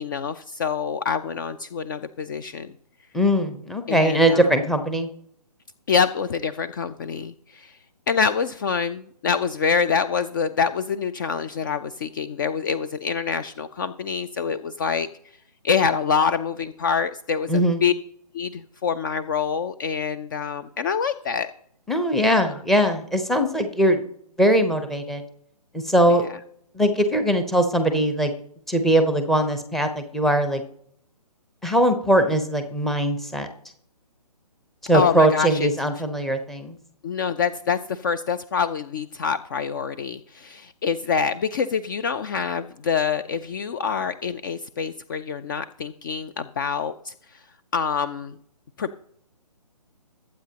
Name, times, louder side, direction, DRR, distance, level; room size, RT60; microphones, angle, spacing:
voice 1, 0.0-2.7 3.9-4.5 5.9-7.8 8.1-15.1 15.6-17.9 18.3-21.5 22.4-22.5 26.2-26.3 34.9-35.7 37.0-47.1 47.7-48.4 48.8-49.0, left 6 dB, 30° left, 12 dB, 0.5 m, -26 dB
voice 2, 3.1-5.1 17.5-17.8 21.9-24.0 24.4-25.2 25.7-26.2 26.7-28.3 28.7-30.6 31.6-33.5 34.8-36.8, right 1 dB, ahead, 7 dB, 0.8 m, -21 dB
21.0 x 8.5 x 2.9 m, 0.65 s
hypercardioid pair, 150°, 20 cm